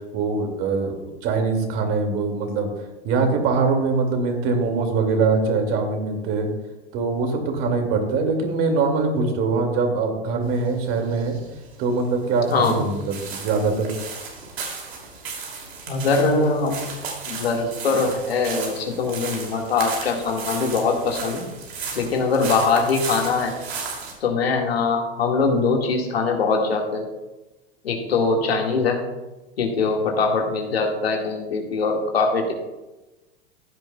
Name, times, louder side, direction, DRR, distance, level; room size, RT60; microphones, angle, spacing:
voice 1, 0.1-2.7 3.0-6.5 6.9-11.4 11.8-13.9, right 4 dB, 50° right, 3 dB, 2.3 m, -23 dB
sound 1, 10.4-24.1, right 5 dB, 90° right, 2.8 m, -35 dB
voice 2, 12.5-12.8 15.9-16.8 17.3-21.5 21.9-23.5 24.2-27.1 27.8-29.0 29.6-32.5, left 4 dB, 90° left, 1 dB, 1.9 m, -22 dB
14.5 x 9.0 x 2.3 m, 1.1 s
hypercardioid pair, 105°, 30 cm